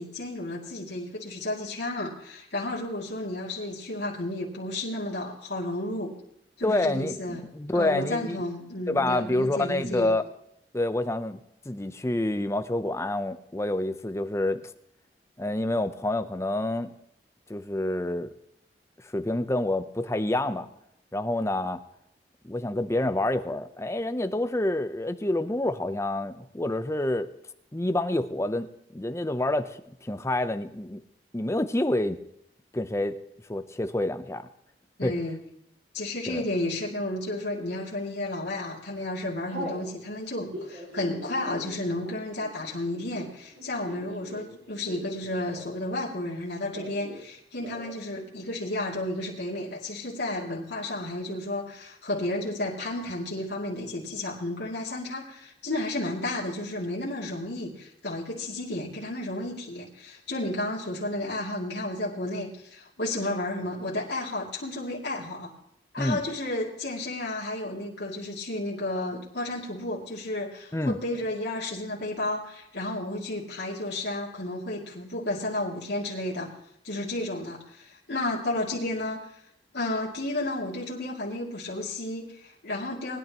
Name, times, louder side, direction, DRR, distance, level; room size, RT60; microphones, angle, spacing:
voice 1, 0.0-6.1 6.6-7.4 7.7-10.1 35.0-35.4 35.9-65.5 65.9-76.5 76.8-79.3 79.7-83.2, left 1 dB, 70° left, -4 dB, 2.6 m, -32 dB
voice 2, 6.6-8.4 8.9-10.2 10.7-11.4 11.6-14.7 15.4-16.9 17.5-18.3 19.0-20.7 21.1-21.8 22.4-27.3 27.7-31.0 31.3-32.2 32.7-33.2 33.5-34.5 35.0-35.1 36.3-36.4 66.0-66.2 70.7-71.0, left 1 dB, 15° left, 9 dB, 0.7 m, -28 dB
Telephone, 37.3-37.8 38.4-38.7 38.9-39.8 40.4-45.9 46.1-47.2 47.5-48.0 48.3-48.4 48.6-49.2, equal, 75° right, 5.9 m, -42 dB
20.0 x 10.5 x 3.0 m, 0.75 s
head